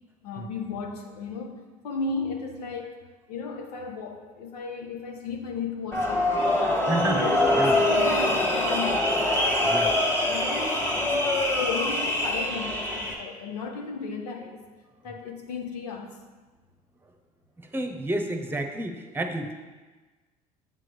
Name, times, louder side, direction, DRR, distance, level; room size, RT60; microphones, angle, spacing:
voice 1, 0.2-2.9 3.3-6.4 6.8-9.2 9.6-9.8 10.2-14.7 15.0-16.2, left 4 dB, 85° left, 4 dB, 1.0 m, -35 dB
sound 1, 5.9-13.1, left 1 dB, 10° left, 1.9 m, -24 dB
voice 2, 6.9-7.3 7.6-7.8 9.6-9.9 17.6-19.6, right 1 dB, 10° right, 5 dB, 1.0 m, -30 dB
7.6 x 7.5 x 3.3 m, 1.3 s
hypercardioid pair, 75°, 19 cm